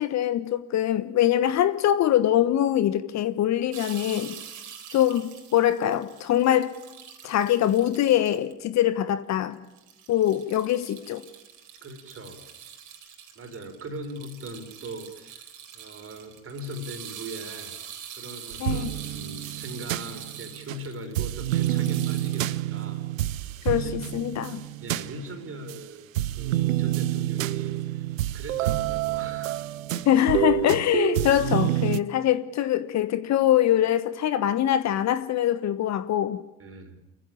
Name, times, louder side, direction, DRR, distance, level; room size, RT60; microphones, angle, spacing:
voice 1, 0.0-4.4 4.9-6.7 7.2-9.6 10.1-11.2 18.6-18.9 23.6-24.6 30.0-36.4, left 11 dB, 40° left, 12 dB, 1.3 m, -23 dB
sound 1, 3.7-8.5 9.1-9.2 9.5-22.6, right 8 dB, 50° right, 4.0 m, -44 dB
voice 2, 11.8-12.4 13.3-15.5 15.7-17.8 18.1-23.0 23.6-24.0 24.8-28.1 28.3-29.6 36.6-37.0, right 1 dB, 35° right, 6 dB, 4.6 m, -40 dB
sound 2, 18.5-20.8 21.1-25.8 26.1-32.0, right 14 dB, 70° right, 0.7 m, -28 dB
29.0 x 15.0 x 9.0 m, 1.0 s
figure-of-eight pair, 60°, 40 cm